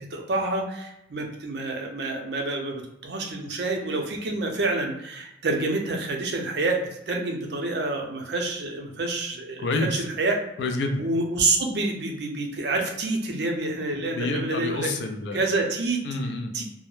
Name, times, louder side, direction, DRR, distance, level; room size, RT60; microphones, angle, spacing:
voice 1, 0.0-10.4 11.0-14.9 15.3-16.0 16.5-16.6, right 2 dB, 65° right, 2 dB, 0.5 m, -28 dB
voice 2, 9.6-10.0 10.6-11.0 14.0-15.5 16.0-16.5, left 2 dB, 70° left, 5 dB, 0.4 m, -28 dB
2.2 x 2.0 x 3.0 m, 0.82 s
head